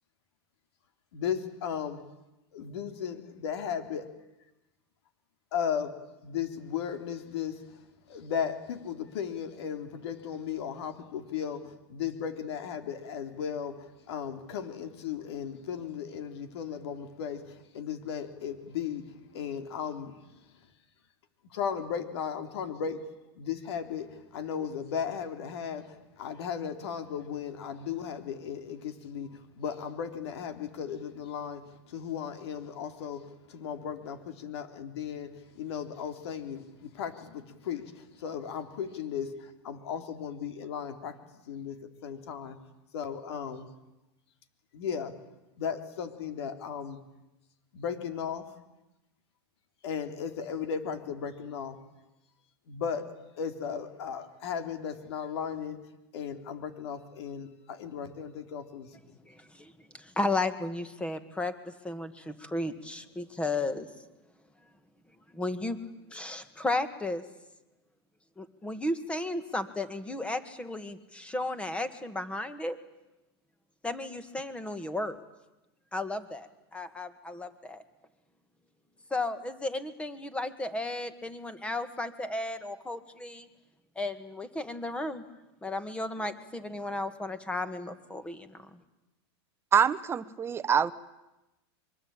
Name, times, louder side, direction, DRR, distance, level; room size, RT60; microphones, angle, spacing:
voice 1, 1.1-2.0 2.5-4.1 5.5-5.9 6.2-7.8 8.1-20.1 21.5-23.0 23.4-41.2 41.4-42.6 42.9-43.7 44.7-45.1 45.6-47.0 47.7-48.5 49.8-51.8 52.7-53.0 53.4-55.8 56.1-58.9, left 7 dB, 75° left, 8 dB, 3.4 m, -36 dB
voice 2, 59.3-63.9 65.3-65.8 66.1-67.2 68.4-72.8 73.8-75.2 75.9-77.8 79.1-83.5 84.0-85.2 85.6-88.7, left 2 dB, 10° left, 12 dB, 1.9 m, -34 dB
voice 3, 89.7-90.9, right 7 dB, 20° right, 13 dB, 1.0 m, -25 dB
25.0 x 23.0 x 9.0 m, 0.97 s
supercardioid pair, 145°, 14 cm